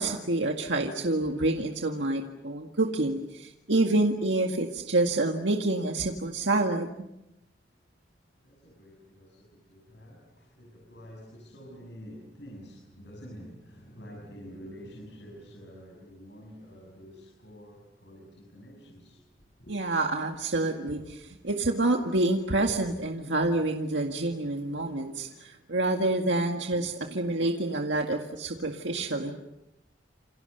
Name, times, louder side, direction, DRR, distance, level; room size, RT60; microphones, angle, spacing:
voice 1, 0.0-7.1 19.7-29.3, right 2 dB, 85° right, 1.9 m, -27 dB
voice 2, 8.4-19.3 19.6-19.7, equal, 75° left, 7.0 m, -48 dB
28.5 x 28.5 x 6.8 m
head